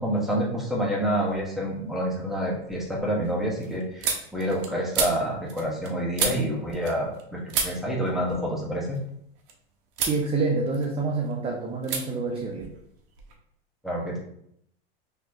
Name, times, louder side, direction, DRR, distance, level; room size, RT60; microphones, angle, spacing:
voice 1, 0.0-9.0 13.8-14.2, equal, ahead, -4 dB, 1.1 m, -28 dB
sound 1, 1.3-1.8 2.2-7.2 7.5-9.5 9.9-10.2 10.6-11.3 11.8-12.0 12.3-13.4, right 5 dB, 50° right, 0.8 m, -33 dB
voice 2, 10.1-12.7, right 3 dB, 20° right, 0 dB, 0.5 m, -27 dB
4.2 x 2.9 x 2.7 m, 0.71 s
hypercardioid pair, 115°, 31 cm